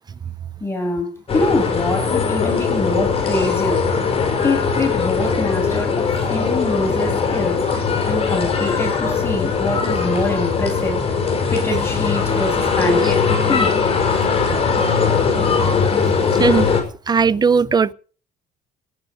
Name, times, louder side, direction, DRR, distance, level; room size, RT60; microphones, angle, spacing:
voice 1, 0.6-3.9 4.4-11.1 11.5-13.8, left 2 dB, 15° left, 8.0 m, -24 dB
sound 1, 1.3-16.8, left 5 dB, 35° left, 5.4 m, -20 dB
voice 2, 17.1-17.9, right 5 dB, 25° right, 0.7 m, -16 dB
17.5 x 7.9 x 7.9 m
cardioid pair, 110°, 17 cm